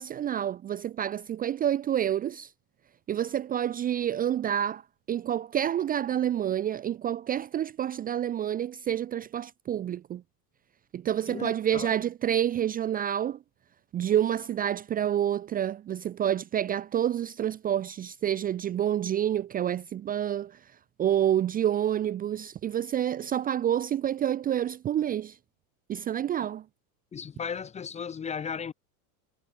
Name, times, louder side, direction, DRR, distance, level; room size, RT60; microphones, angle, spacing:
voice 1, 0.0-2.5 3.1-4.8 5.1-10.2 10.9-13.4 13.9-20.5 21.0-25.3 25.9-26.6, right 10 dB, 20° right, 0.7 m, -28 dB
voice 2, 11.3-11.9 27.1-28.7, left 7 dB, 15° left, 0.9 m, -35 dB
supercardioid pair, 155°, 48 cm